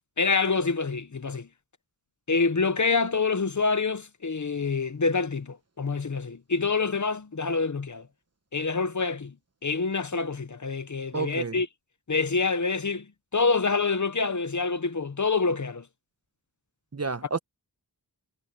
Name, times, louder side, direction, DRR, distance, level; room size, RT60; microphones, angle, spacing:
voice 1, 0.2-1.5 2.3-8.1 8.5-9.3 9.6-11.7 12.1-15.9, left 4 dB, 45° left, 0.9 m, -26 dB
voice 2, 11.1-11.6 16.9-17.4, right 4 dB, 40° right, 1.1 m, -30 dB
wide cardioid pair, 70°, 41 cm